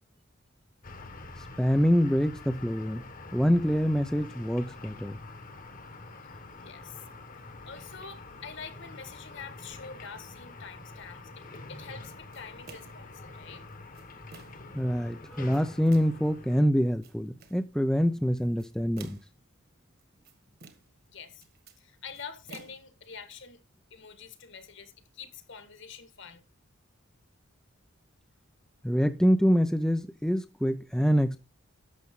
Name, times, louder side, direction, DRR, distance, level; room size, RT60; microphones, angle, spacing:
sound 1, 0.8-16.6, left 2 dB, 40° left, 1.3 m, -46 dB
voice 1, 1.6-5.2 14.7-19.2 28.8-31.4, equal, 5° left, 0.5 m, -25 dB
voice 2, 6.6-7.1 7.6-11.4 11.7-13.6 21.1-21.4 21.8-23.6 23.9-26.4, left 6 dB, 55° left, 1.7 m, -46 dB
sound 2, 12.3-13.1 13.7-14.7 15.3-16.2 16.8-17.7 18.4-19.4 20.0-21.0 21.3-23.3, right 4 dB, 45° right, 1.6 m, -52 dB
11.5 x 7.4 x 3.7 m
head